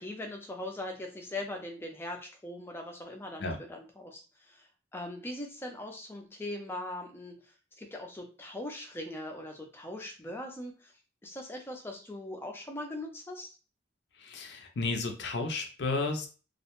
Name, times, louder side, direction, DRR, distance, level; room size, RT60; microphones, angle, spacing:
voice 1, 0.0-4.2 4.5-4.7 4.9-7.4 7.8-10.9 11.2-13.5, left 1 dB, 10° left, 1 dB, 0.4 m, -40 dB
voice 2, 14.2-16.3, left 3 dB, 65° left, 4 dB, 0.5 m, -32 dB
2.3 x 2.1 x 2.9 m, 0.35 s
head